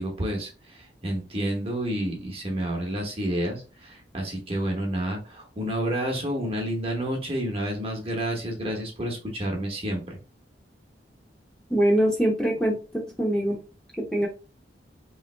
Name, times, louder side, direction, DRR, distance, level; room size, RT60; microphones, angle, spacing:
voice 1, 0.0-10.2, right 1 dB, 30° right, 1 dB, 1.1 m, -30 dB
voice 2, 11.7-12.8 13.2-13.6 14.0-14.3, right 1 dB, 5° left, -3 dB, 0.9 m, -22 dB
3.4 x 3.2 x 3.2 m, 0.34 s
head